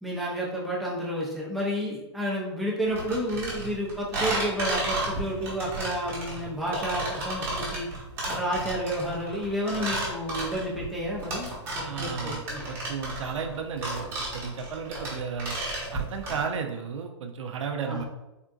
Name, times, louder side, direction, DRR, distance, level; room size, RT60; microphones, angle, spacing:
voice 1, 0.0-7.9 8.3-12.6 17.9-18.0, equal, ahead, -6 dB, 0.3 m, -31 dB
sound 1, 2.9-16.4, right 2 dB, 15° right, 0.9 m, -32 dB
voice 2, 11.8-15.6 15.9-18.0, right 6 dB, 90° right, 4 dB, 0.4 m, -34 dB
3.6 x 2.5 x 2.2 m, 1.0 s
hypercardioid pair, 160°, 15 cm